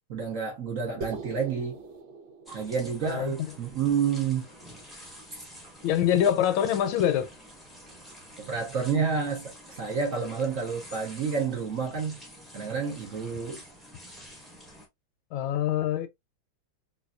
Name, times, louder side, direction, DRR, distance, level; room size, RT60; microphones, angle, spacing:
voice 1, 0.1-1.8 2.5-4.5 8.4-12.2 12.5-13.6, right 6 dB, 55° right, 1.0 m, -29 dB
sound 1, 1.0-5.4, right 3 dB, 75° right, 1.7 m, -44 dB
sound 2, 2.5-14.9, equal, ahead, 0.6 m, -48 dB
voice 2, 5.8-7.3 15.3-16.1, left 10 dB, 85° left, 1.4 m, -24 dB
4.1 x 2.6 x 2.3 m
omnidirectional pair, 2.2 m